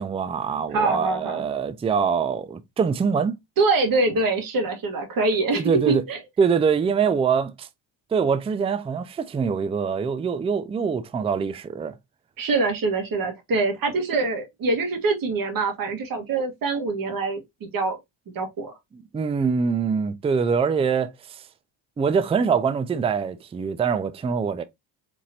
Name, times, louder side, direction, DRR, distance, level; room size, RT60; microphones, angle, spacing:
voice 1, 0.0-3.3 5.6-6.0 6.4-7.7 8.1-11.9 18.9-21.4 22.0-24.6, right 6 dB, 15° right, 0.3 m, -24 dB
voice 2, 0.7-1.4 3.6-6.2 12.4-18.0 18.3-18.7, right 3 dB, 50° right, 1.4 m, -24 dB
4.3 x 2.9 x 2.7 m
cardioid pair, 85°, 44 cm